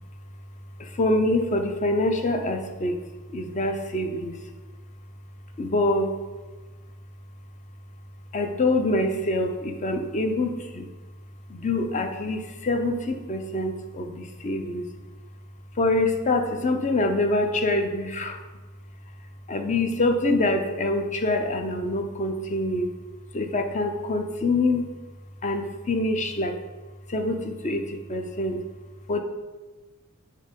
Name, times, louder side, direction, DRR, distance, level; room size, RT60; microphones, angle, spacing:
voice 1, 0.8-3.0 3.3-4.3 5.6-6.2 8.3-10.9 11.5-14.9 15.8-18.4 19.5-22.9 23.3-24.9 25.4-26.5 27.1-28.6 29.1-29.2, left 2 dB, 35° left, 5 dB, 0.6 m, -25 dB
7.6 x 3.7 x 5.2 m, 1.2 s
head